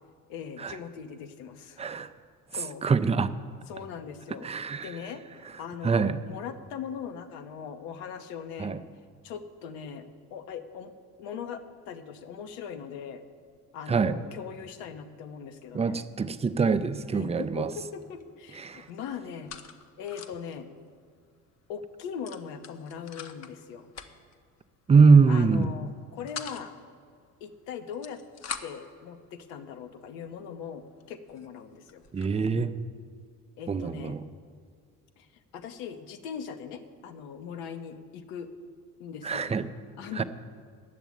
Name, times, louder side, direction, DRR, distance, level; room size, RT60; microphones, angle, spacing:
voice 1, 0.3-1.8 2.5-2.9 3.7-4.5 4.8-8.8 9.2-10.9 11.2-13.2 13.7-16.0 17.1-19.5 20.0-20.7 21.7-23.9 25.3-26.7 27.4-28.2 28.6-32.0 33.6-34.2 35.2-35.3 35.5-38.5 39.0-39.5 40.0-40.2, left 7 dB, 60° left, 8 dB, 1.1 m, -40 dB
voice 2, 1.8-2.1 2.8-3.3 4.4-4.9 5.8-6.2 8.6-8.8 13.9-14.2 15.7-17.7 18.5-18.9 24.9-25.7 32.1-32.7 33.7-34.3 39.2-39.7 40.2-40.3, right 5 dB, 15° right, 11 dB, 0.5 m, -23 dB
sound 1, 16.8-17.1 17.4-18.2 18.5-20.6 20.9-21.0 21.3-21.5 22.2-23.6 23.9-24.4 25.2-25.5 25.9-26.7 27.7-28.9 29.7-29.8 30.4-30.5 31.0-31.1 31.3-32.3, left 7 dB, 35° left, 0.9 m, -43 dB
10.5 x 8.0 x 8.7 m, 2.1 s
figure-of-eight pair, 55°, 45 cm